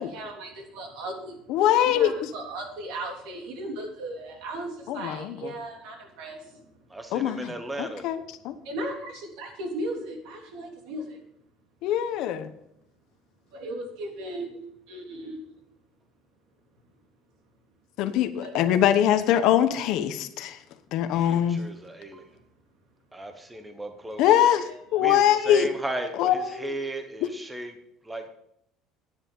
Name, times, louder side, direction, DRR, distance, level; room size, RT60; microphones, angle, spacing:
voice 1, 0.1-1.4 1.8-6.7 8.6-11.2 13.5-14.6 14.9-15.4 18.4-18.7 24.7-24.8, right 1 dB, 75° right, 2 dB, 3.2 m, -36 dB
voice 2, 1.5-2.3 4.9-5.5 7.1-8.5 11.8-12.5 18.0-20.6 20.9-21.6 24.2-25.7 26.1-26.8, left 10 dB, 55° left, 10 dB, 1.0 m, -23 dB
voice 3, 6.9-8.0 21.3-22.2 23.1-24.3 25.0-25.2 25.5-26.3 26.6-27.7 28.1-28.2, right 1 dB, 10° right, 6 dB, 0.9 m, -35 dB
10.5 x 9.5 x 5.4 m, 0.75 s
cardioid pair, 180°, 0 cm